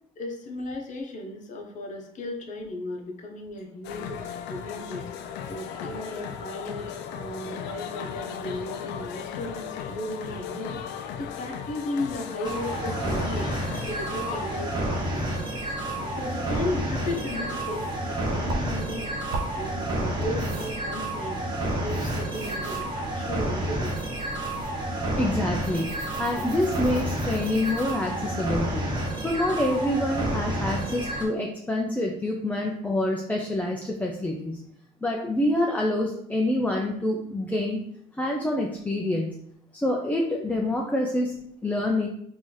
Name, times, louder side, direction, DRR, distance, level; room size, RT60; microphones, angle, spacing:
voice 1, 0.2-5.0 5.5-13.6 13.8-15.8 16.1-19.1 19.5-24.1, left 1 dB, 50° left, 2 dB, 0.8 m, -35 dB
sound 1, 3.8-19.4, left 8 dB, 90° left, 0.4 m, -38 dB
sound 2, 12.4-31.2, right 1 dB, 25° right, 1.1 m, -30 dB
sound 3, 18.5-27.9, right 3 dB, 75° right, 0.7 m, -40 dB
voice 2, 25.2-28.9 29.2-34.6 35.0-37.8 38.2-39.4 39.7-41.3 41.6-42.1, left 1 dB, 10° left, -1 dB, 0.4 m, -27 dB
3.1 x 2.6 x 3.8 m, 0.69 s
cardioid pair, 110°, 17 cm